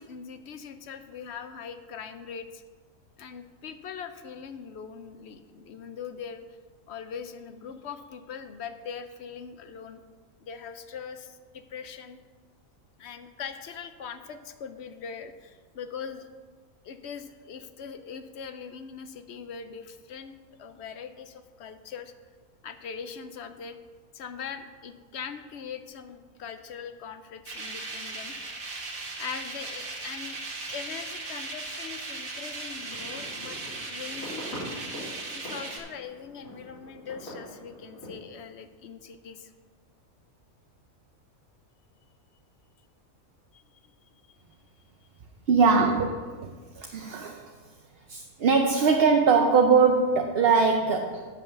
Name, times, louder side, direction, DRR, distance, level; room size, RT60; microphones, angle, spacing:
voice 1, 0.0-2.6 3.2-6.4 6.9-10.0 10.4-12.2 13.0-16.3 16.8-20.3 20.6-22.1 22.6-23.8 24.1-28.4 29.2-30.4 30.7-34.4 34.9-35.1 35.3-39.5 43.5-44.4 45.7-45.8, left 6 dB, 60° left, 9 dB, 0.8 m, -41 dB
sound 1, 27.5-35.8, right 3 dB, 75° right, 1.9 m, -37 dB
sound 2, 32.7-38.1, equal, 75° left, 4.0 m, -43 dB
voice 2, 45.5-47.4 48.1-51.3, right 5 dB, 55° right, 3 dB, 0.8 m, -22 dB
9.3 x 5.5 x 6.7 m, 1.5 s
omnidirectional pair, 1.5 m